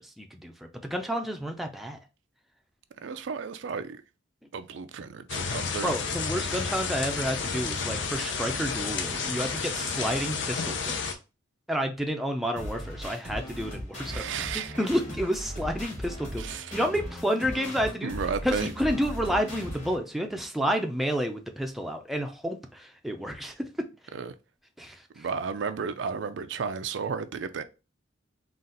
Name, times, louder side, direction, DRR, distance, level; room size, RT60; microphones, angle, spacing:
voice 1, 0.0-2.0 5.8-11.2 11.7-14.3 14.5-16.5 16.7-18.1 18.4-23.5 24.8-25.0, equal, ahead, 0.5 m, -30 dB
voice 2, 3.0-4.0 4.5-5.9 14.1-14.8 16.4-16.8 18.0-18.7 24.1-24.3 25.2-27.6, right 6 dB, 70° right, 0.4 m, -33 dB
sound 1, 5.3-11.1, left 5 dB, 75° left, 0.6 m, -31 dB
sound 2, 12.6-20.0, equal, 40° left, 2.0 m, -38 dB
4.0 x 2.5 x 3.8 m
head